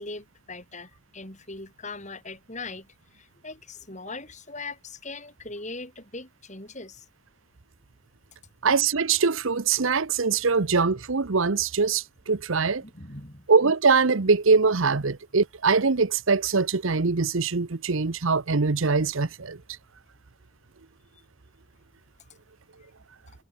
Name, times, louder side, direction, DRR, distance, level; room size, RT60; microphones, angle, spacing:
voice 1, 0.0-7.1 12.8-13.5, left 3 dB, 35° left, 6.9 m, -40 dB
voice 2, 8.6-12.8 13.5-19.6, right 4 dB, 65° right, 0.9 m, -23 dB
head